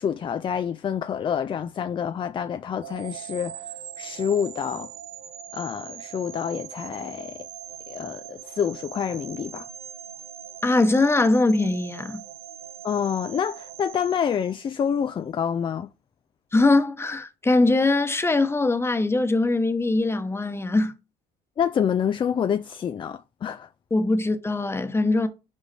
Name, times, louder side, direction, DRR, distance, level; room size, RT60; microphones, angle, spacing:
voice 1, 0.0-4.9 5.5-7.5 7.9-9.7 12.8-15.9 21.6-23.7, left 8 dB, 30° left, 0.3 m, -27 dB
sound 1, 2.8-15.0, right 9 dB, 70° right, 1.1 m, -41 dB
voice 2, 10.6-12.2 16.5-20.9 23.9-25.3, left 2 dB, 15° left, 1.0 m, -21 dB
5.2 x 4.8 x 4.2 m
cardioid pair, 110°, 17 cm